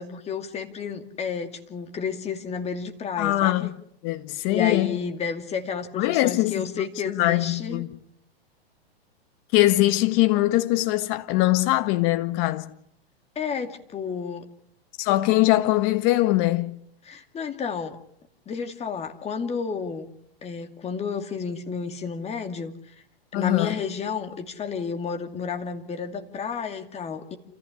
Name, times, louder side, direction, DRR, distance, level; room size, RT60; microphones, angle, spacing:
voice 1, 0.0-3.7 4.5-7.8 13.4-14.5 17.1-18.0 18.5-20.1 20.4-22.7 23.3-27.4, left 6 dB, 20° left, 2.5 m, -31 dB
voice 2, 3.2-3.7 4.0-5.0 6.0-6.8 7.2-8.0 9.5-12.7 15.0-16.7 23.3-23.8, left 17 dB, 40° left, 1.7 m, -22 dB
28.0 x 15.0 x 9.8 m
hypercardioid pair, 125°, 31 cm